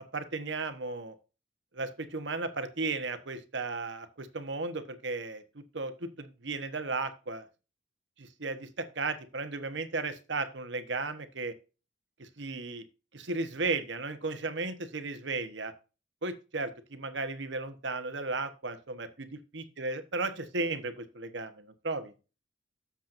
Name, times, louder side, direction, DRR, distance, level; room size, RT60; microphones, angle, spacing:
voice 1, 0.1-1.1 1.7-7.4 8.2-11.5 12.2-12.8 13.1-15.7 16.2-21.5 21.8-22.1, right 3 dB, 65° right, 9 dB, 1.1 m, -35 dB
12.0 x 7.2 x 2.6 m, 0.31 s
head